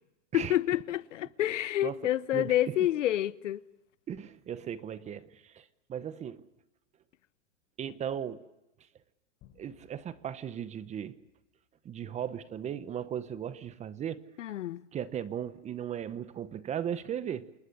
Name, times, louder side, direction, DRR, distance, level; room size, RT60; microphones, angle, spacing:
voice 1, 0.3-3.6 14.4-14.8, left 13 dB, 85° left, 0.9 m, -28 dB
voice 2, 2.3-2.7 4.1-6.5 7.8-8.4 9.6-11.2 11.8-14.2 14.9-17.5, right 9 dB, 20° right, 0.9 m, -37 dB
sound 1, 9.4-12.2, left 9 dB, 35° left, 5.6 m, -64 dB
28.0 x 20.5 x 7.0 m
hypercardioid pair, 135°, 36 cm